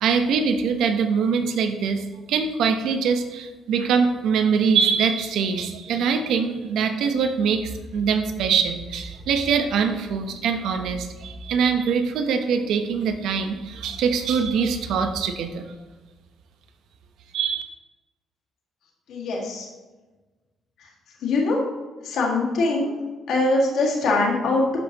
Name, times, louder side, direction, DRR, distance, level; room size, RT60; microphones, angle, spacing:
voice 1, 0.0-15.7 17.3-17.6, right 6 dB, 80° right, 7 dB, 0.8 m, -23 dB
voice 2, 19.1-19.7 21.2-21.6 22.0-22.9 23.3-24.8, left 2 dB, 80° left, -1 dB, 2.0 m, -22 dB
12.0 x 5.4 x 3.0 m, 1.2 s
cardioid pair, 90°, 0 cm